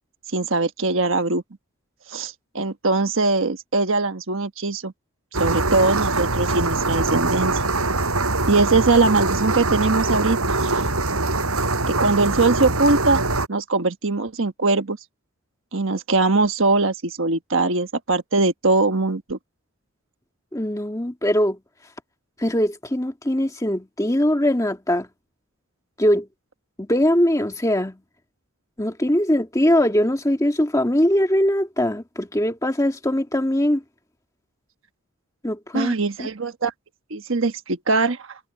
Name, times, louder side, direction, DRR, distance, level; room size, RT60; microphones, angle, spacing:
voice 1, 0.3-1.4 2.1-4.9 5.4-7.6 8.5-10.9 11.8-13.2 13.5-15.0 15.7-19.4 35.7-36.7 37.1-38.2, right 3 dB, 60° right, 1.3 m, -21 dB
sound 1, 5.3-13.5, right 2 dB, 80° right, 6.9 m, -23 dB
voice 2, 20.5-21.6 22.4-25.1 26.0-26.3 26.8-28.0 28.8-33.8 35.4-35.9 36.2-36.3, left 1 dB, 15° left, 1.8 m, -21 dB
head